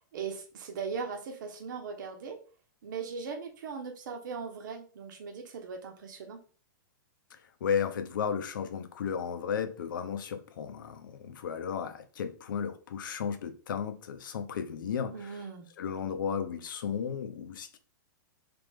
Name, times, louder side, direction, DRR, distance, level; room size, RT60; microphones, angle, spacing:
voice 1, 0.1-2.4 2.8-6.4 15.1-15.7, right 5 dB, 65° right, 0.9 m, -39 dB
voice 2, 7.3-15.5 15.8-17.8, left 7 dB, 75° left, 0.8 m, -34 dB
3.5 x 3.4 x 3.5 m
hypercardioid pair, 155°, 11 cm